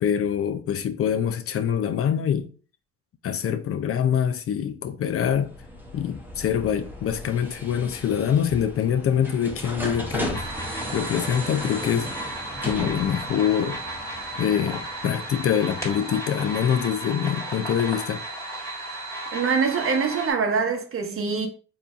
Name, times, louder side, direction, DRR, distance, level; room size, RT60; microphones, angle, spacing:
voice 1, 0.0-2.5 3.2-5.5 5.9-10.5 10.9-13.8 14.4-18.2, left 8 dB, 50° left, 0.4 m, -25 dB
sound 1, 5.2-15.9, equal, 5° right, 0.8 m, -36 dB
sound 2, 10.3-20.3, right 1 dB, 10° left, 1.5 m, -34 dB
voice 2, 19.3-21.5, right 5 dB, 45° right, 0.8 m, -24 dB
4.1 x 2.7 x 2.4 m
cardioid pair, 90°, 30 cm